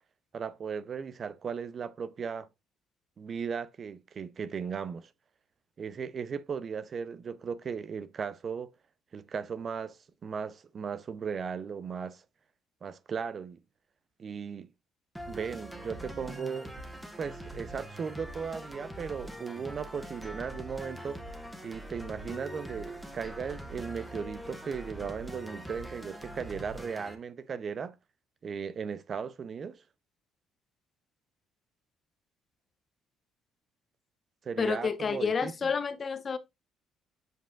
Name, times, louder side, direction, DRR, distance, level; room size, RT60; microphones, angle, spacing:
voice 1, 0.3-2.5 3.2-5.1 5.8-8.7 9.1-12.2 12.8-13.6 14.2-14.7 15.3-16.7 17.2-21.2 21.6-28.0 28.4-29.8 34.4-35.5, right 6 dB, 45° right, 0.6 m, -37 dB
sound 1, 15.1-27.1, equal, 5° right, 1.4 m, -43 dB
voice 2, 34.6-36.4, left 5 dB, 35° left, 0.9 m, -30 dB
7.9 x 5.0 x 2.4 m
cardioid pair, 95°, 0 cm